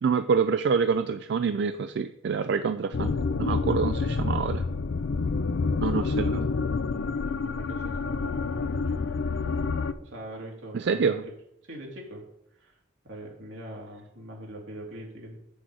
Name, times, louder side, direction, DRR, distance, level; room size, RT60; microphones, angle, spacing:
voice 1, 0.0-4.7 5.8-6.5 10.7-11.2, right 5 dB, 60° right, 10 dB, 0.3 m, -26 dB
sound 1, 2.9-9.9, left 4 dB, 70° left, 0.5 m, -28 dB
voice 2, 7.2-9.6 10.0-11.3 11.7-12.2 12.6-12.7 13.0-15.4, right 1 dB, 85° right, -1 dB, 2.4 m, -43 dB
7.6 x 6.3 x 4.7 m, 0.78 s
head